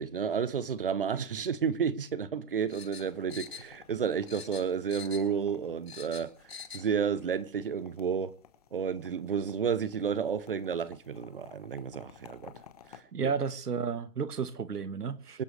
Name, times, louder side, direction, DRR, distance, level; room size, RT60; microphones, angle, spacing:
voice 1, 0.0-6.3 6.7-8.3 8.7-12.5 13.2-13.3 15.3-15.4, right 7 dB, 35° right, 0.7 m, -31 dB
sound 1, 2.7-4.0 4.3-5.4 5.7-6.9 7.2-7.3, left 7 dB, 80° left, 6.6 m, -45 dB
sound 2, 3.0-13.0, left 8 dB, 25° left, 1.1 m, -56 dB
voice 2, 13.1-15.4, right 6 dB, 90° right, 1.6 m, -32 dB
25.0 x 11.5 x 3.3 m
hypercardioid pair, 160°, 46 cm